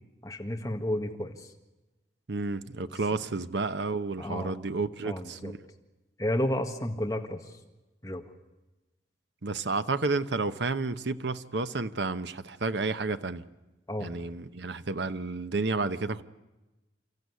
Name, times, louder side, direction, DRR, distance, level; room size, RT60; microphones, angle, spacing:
voice 1, 0.2-1.5 4.2-4.5 5.0-5.5 6.2-7.4 8.0-8.2 13.9-14.1, left 1 dB, 20° left, 1.7 m, -31 dB
voice 2, 2.3-5.6 9.4-13.4 14.0-16.2, right 3 dB, 75° right, 0.9 m, -31 dB
29.5 x 14.0 x 9.6 m
head